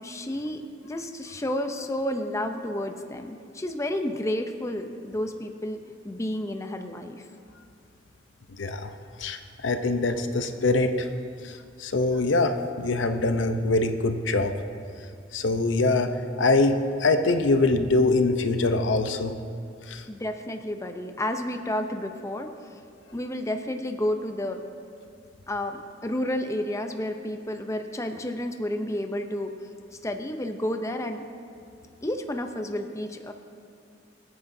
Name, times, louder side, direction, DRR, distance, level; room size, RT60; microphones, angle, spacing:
voice 1, 0.0-5.8 6.0-7.2 20.1-22.5 23.1-24.6 25.5-29.5 30.0-31.2 32.0-33.3, left 1 dB, 15° left, 5 dB, 0.6 m, -31 dB
voice 2, 8.5-8.9 9.2-11.1 11.4-14.5 15.3-19.4 19.9-20.0, left 2 dB, 90° left, 7 dB, 0.7 m, -24 dB
24.0 x 9.4 x 2.7 m, 2.3 s
head